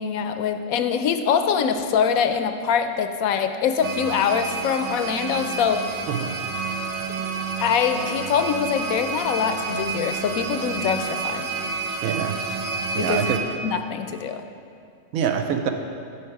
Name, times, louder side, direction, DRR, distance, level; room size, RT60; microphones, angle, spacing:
voice 1, 0.0-6.1 7.6-11.5 13.0-13.3 13.6-14.4, left 7 dB, 80° left, 8 dB, 1.0 m, -24 dB
sound 1, 3.8-13.4, right 5 dB, 60° right, 0.9 m, -29 dB
voice 2, 12.0-12.4 12.9-13.4 15.1-15.7, right 8 dB, 80° right, 6 dB, 1.0 m, -25 dB
12.0 x 4.7 x 4.7 m, 2.3 s
omnidirectional pair, 1.5 m